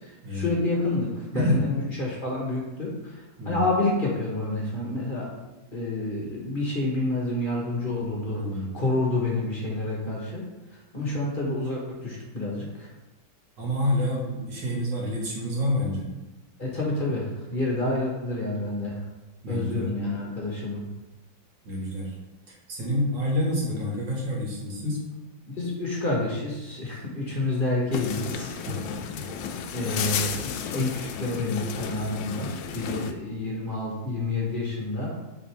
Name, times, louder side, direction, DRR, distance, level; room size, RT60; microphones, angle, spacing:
voice 1, 0.0-1.7 2.0-5.3 5.7-8.4 8.7-10.5 10.9-12.9 16.6-19.0 19.5-20.8 25.5-28.6 29.7-35.1, left 2 dB, 30° left, -3 dB, 1.3 m, -28 dB
voice 2, 1.3-1.7 3.4-3.6 8.3-8.7 13.6-16.1 19.4-19.9 21.6-22.1 22.5-25.1 28.7-28.8 29.1-29.3 32.3-33.0, left 1 dB, 65° right, -3 dB, 2.3 m, -28 dB
sound 1, 27.9-33.1, left 7 dB, 75° left, 1.2 m, -33 dB
7.7 x 4.1 x 3.5 m, 1.1 s
omnidirectional pair, 2.1 m